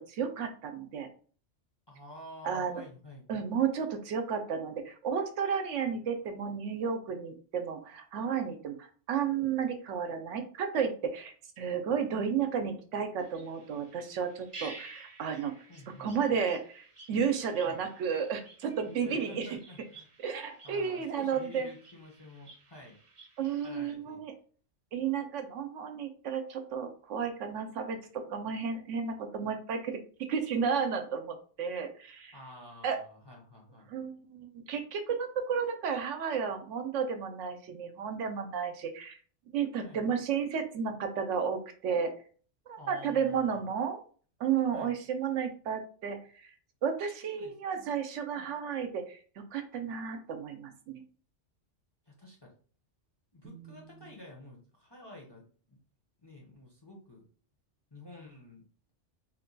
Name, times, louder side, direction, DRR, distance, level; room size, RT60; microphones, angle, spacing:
voice 1, 0.1-1.1 2.4-2.8 3.3-15.5 16.0-19.6 20.2-21.7 23.4-24.3 24.9-28.0 28.3-29.9 30.3-32.3 32.8-33.0 33.9-39.2 39.5-42.1 42.7-44.0 44.4-46.5 46.8-49.2 49.5-51.0 53.4-53.8, right 7 dB, 80° right, 7 dB, 0.9 m, -32 dB
voice 2, 1.9-3.3 12.1-12.3 15.7-16.1 17.6-17.8 19.0-20.1 20.6-23.0 23.6-24.2 32.3-33.9 39.8-40.0 42.8-43.7 44.7-45.0 47.3-47.9 48.3-48.5 52.1-52.5 53.3-55.8 56.2-57.2 57.9-58.6, left 1 dB, 30° left, -1 dB, 0.6 m, -50 dB
sound 1, 13.2-23.9, right 3 dB, 30° right, 0.6 m, -53 dB
2.9 x 2.2 x 3.8 m, 0.43 s
omnidirectional pair, 1.2 m